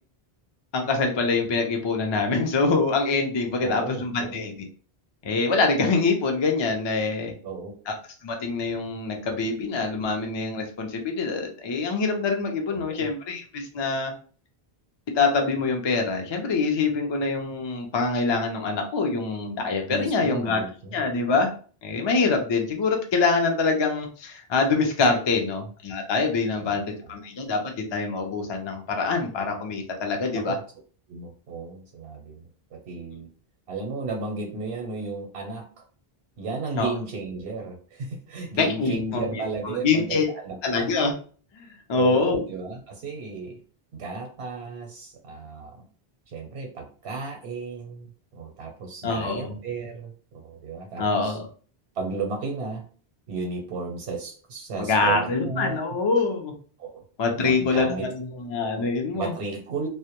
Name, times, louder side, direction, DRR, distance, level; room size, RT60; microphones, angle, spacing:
voice 1, 0.7-4.7 5.2-7.3 7.9-8.0 8.2-14.1 15.1-20.6 20.9-21.5 21.8-30.6 36.8-36.9 38.6-40.3 40.6-41.1 41.5-42.4 49.0-49.5 51.0-51.5 54.8-56.5 57.2-59.3, left 4 dB, 50° left, 3 dB, 0.3 m, -25 dB
voice 2, 3.6-4.4 7.4-7.7 12.7-13.1 19.9-20.9 26.6-26.8 30.3-30.6 31.1-33.3 33.7-35.8 36.4-40.9 41.9-43.5 43.9-45.8 46.3-51.4 51.9-52.8 53.3-55.8 56.8-57.0 57.3-58.1 58.7-58.8 59.1-59.9, right 4 dB, 90° right, 1 dB, 0.9 m, -34 dB
2.1 x 2.1 x 2.9 m, 0.41 s
omnidirectional pair, 1.1 m